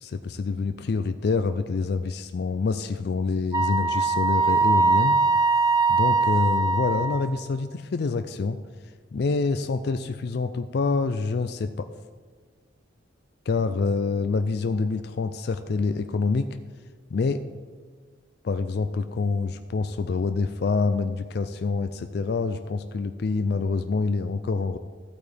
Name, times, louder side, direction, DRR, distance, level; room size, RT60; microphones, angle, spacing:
voice 1, 0.0-5.2 5.9-8.6 9.1-11.9 13.5-16.5 17.1-17.4 18.4-24.8, left 4 dB, 55° left, 9 dB, 0.4 m, -26 dB
Wind instrument woodwind instrument, 3.5-7.4, right 4 dB, 20° right, 0.5 m, -22 dB
14.5 x 8.4 x 3.4 m, 1.5 s
head